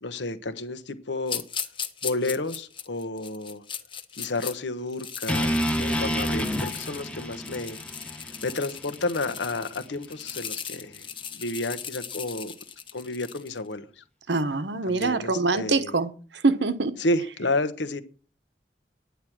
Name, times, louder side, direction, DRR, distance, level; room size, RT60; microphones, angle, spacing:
voice 1, 0.0-1.4 2.0-3.6 4.1-12.5 12.9-14.0 14.9-15.9 17.0-18.0, left 2 dB, 90° left, 1.2 m, -31 dB
sound 1, 1.3-4.5 4.9-13.6, left 7 dB, 30° left, 1.1 m, -38 dB
sound 2, 5.3-9.4, equal, 5° left, 0.9 m, -29 dB
voice 2, 14.3-16.9, right 3 dB, 75° right, 1.1 m, -25 dB
10.5 x 9.5 x 6.1 m
head